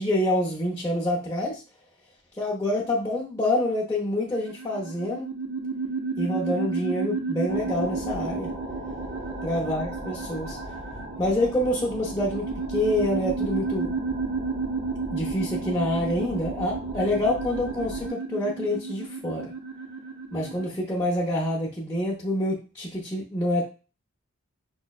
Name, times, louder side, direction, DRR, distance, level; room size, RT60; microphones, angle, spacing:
voice 1, 0.0-1.6 2.4-5.3 6.2-8.5 9.4-10.6 11.2-13.9 15.1-19.5 20.3-23.6, left 1 dB, 15° left, -7 dB, 0.7 m, -27 dB
sound 1, 4.3-20.7, right 4 dB, 80° right, 0.7 m, -32 dB
sound 2, 7.5-18.1, right 1 dB, 35° right, 0.7 m, -38 dB
5.4 x 2.1 x 2.4 m, 0.34 s
head